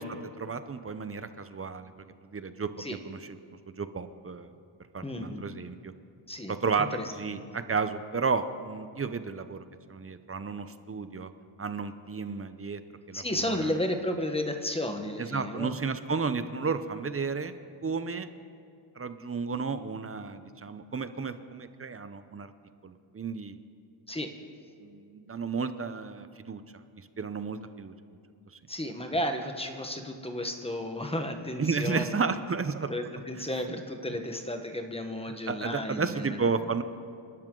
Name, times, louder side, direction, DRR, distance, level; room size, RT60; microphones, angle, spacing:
voice 1, 0.0-1.9 2.3-3.4 3.8-4.5 4.9-5.9 6.5-9.6 9.9-11.3 11.6-12.8 13.1-13.7 15.2-17.5 17.8-18.3 19.0-22.5 22.8-23.6 24.8-26.6 27.0-27.9 31.6-32.9 33.3-33.5 35.3-36.8, right 5 dB, 30° right, 11 dB, 0.6 m, -32 dB
voice 2, 5.0-5.4 6.3-6.5 6.9-7.0 7.3-7.4 13.1-15.8 24.1-24.3 28.7-32.2 32.9-36.5, left 1 dB, 10° left, 5 dB, 1.2 m, -33 dB
29.0 x 12.5 x 3.8 m, 2.4 s
wide cardioid pair, 145°, 50 cm